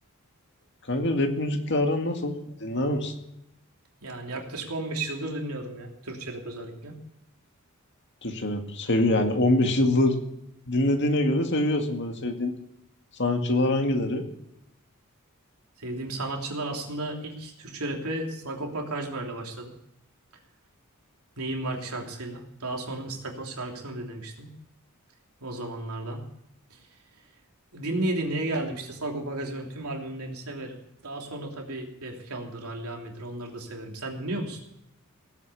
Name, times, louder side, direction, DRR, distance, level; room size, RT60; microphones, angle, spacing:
voice 1, 0.9-3.1 8.2-10.2 10.7-12.5 13.2-14.3, left 1 dB, 55° left, 4 dB, 2.1 m, -24 dB
voice 2, 4.0-7.0 15.8-19.7 21.4-24.5 25.4-26.2 26.7-26.8 27.7-30.8 31.0-34.6, right 2 dB, 90° right, 1 dB, 3.2 m, -33 dB
18.0 x 8.4 x 7.0 m, 0.83 s
head